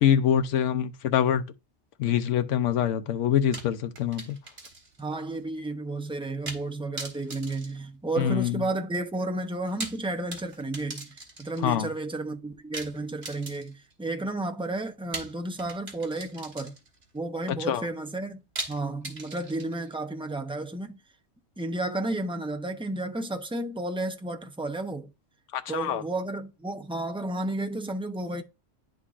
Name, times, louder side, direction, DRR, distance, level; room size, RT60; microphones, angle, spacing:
voice 1, 0.0-1.4 2.0-4.4 8.2-8.6 11.6-11.9 17.7-17.8 25.5-26.0, left 9 dB, 80° left, 1.0 m, -25 dB
sound 1, 3.5-5.1 5.3-5.4 6.5-6.7 7.0-8.5 9.6-11.7 12.7-13.9 15.1-17.0 18.6-19.9, right 2 dB, 55° right, 1.9 m, -40 dB
voice 2, 5.0-16.7 17.1-21.0 21.6-25.1 25.7-28.4, right 2 dB, 10° right, 0.3 m, -32 dB
11.0 x 3.8 x 2.4 m
omnidirectional pair, 1.2 m